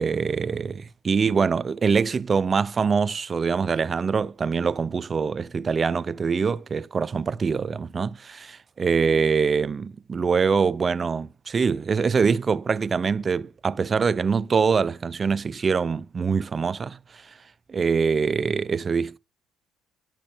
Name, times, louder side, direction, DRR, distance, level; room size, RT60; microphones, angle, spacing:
voice 1, 0.0-17.2 17.7-19.2, right 5 dB, 35° right, 0.4 m, -24 dB
10.0 x 5.9 x 3.4 m
cardioid pair, 95°, 0 cm